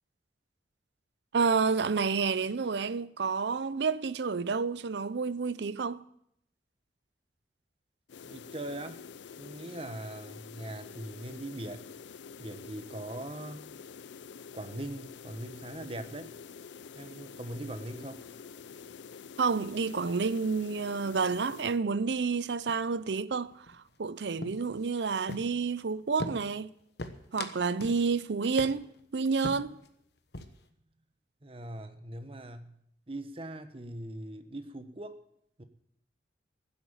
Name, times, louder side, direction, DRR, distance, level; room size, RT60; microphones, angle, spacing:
voice 1, 1.3-6.0 19.4-26.7 27.3-29.8, right 5 dB, 70° right, 0.6 m, -29 dB
sound 1, 8.1-21.8, left 6 dB, 80° left, 0.5 m, -47 dB
voice 2, 8.2-9.0 9.4-11.8 12.4-13.7 14.5-16.3 16.9-18.2 31.4-32.8 33.1-35.2 35.6-35.7, right 1 dB, 30° right, 1.1 m, -41 dB
sound 2, 22.0-22.4 22.7-23.0 23.3-24.1 24.4-25.8 26.2-26.7 27.0-28.0 28.3-28.4 28.6-29.0 29.4-29.9 30.2-30.7, left 2 dB, 65° left, 1.2 m, -41 dB
15.0 x 8.1 x 9.0 m
head